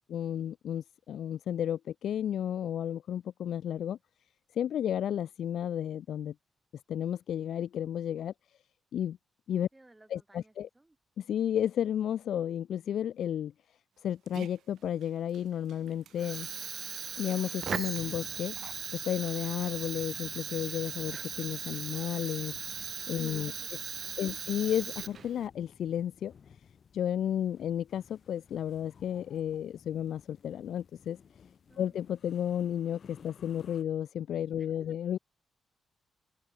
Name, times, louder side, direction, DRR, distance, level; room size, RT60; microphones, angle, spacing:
voice 1, 0.1-4.0 4.5-6.3 6.9-8.3 8.9-9.2 9.5-9.7 10.1-10.7 11.2-13.5 14.0-16.5 17.2-18.5 18.9-22.5 23.1-23.8 24.2-26.3 26.9-31.2 31.8-35.2, left 10 dB, 75° left, 1.1 m, -32 dB
voice 2, 9.7-11.0 23.2-24.4 31.7-32.0 34.6-34.7, right 2 dB, 15° right, 6.9 m, -61 dB
Dog, 13.9-19.3, right 10 dB, 80° right, 2.1 m, -55 dB
sound 1, 15.6-33.8, left 7 dB, 50° left, 4.3 m, -57 dB
Fire, 16.1-25.5, right 7 dB, 50° right, 0.9 m, -38 dB
cardioid pair, 120°, 0 cm